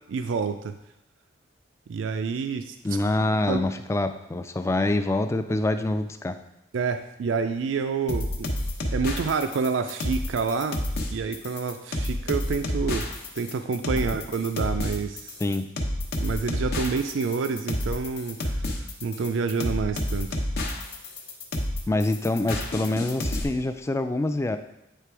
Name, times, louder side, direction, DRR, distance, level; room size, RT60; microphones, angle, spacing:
voice 1, 0.1-0.7 1.9-2.7 3.5-3.6 6.7-8.5 8.9-10.8 11.1-13.1 13.4-15.4 16.2-20.4, right 5 dB, 80° right, 8 dB, 0.4 m, -28 dB
voice 2, 2.8-6.4 15.4-15.7 21.9-24.6, left 2 dB, 15° left, 9 dB, 0.3 m, -25 dB
sound 1, 8.1-23.4, left 1 dB, 60° left, 0.9 m, -29 dB
8.3 x 3.3 x 4.7 m, 0.85 s
head